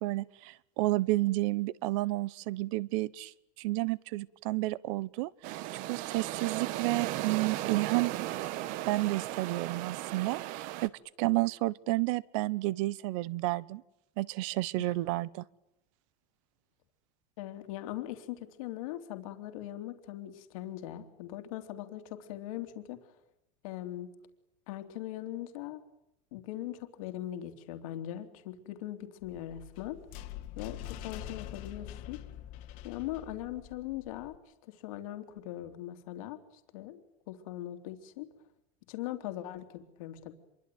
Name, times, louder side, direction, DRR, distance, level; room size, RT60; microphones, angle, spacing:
voice 1, 0.0-3.3 3.6-5.6 5.8-8.1 8.8-10.9 11.2-13.8 14.2-15.4, right 19 dB, 65° right, 21 dB, 1.1 m, -31 dB
sound 1, 5.4-10.9, right 15 dB, 50° right, 1.3 m, -36 dB
voice 2, 17.4-23.0 23.6-24.1 24.7-25.8 26.3-30.0 30.6-32.2 32.8-34.3 34.6-36.4 36.7-37.0 37.3-38.3 38.9-40.4, left 13 dB, 85° left, 8 dB, 3.2 m, -40 dB
sound 2, 29.2-34.4, left 11 dB, 55° left, 1.9 m, -45 dB
27.0 x 23.5 x 9.4 m, 0.84 s
cardioid pair, 170°, 17 cm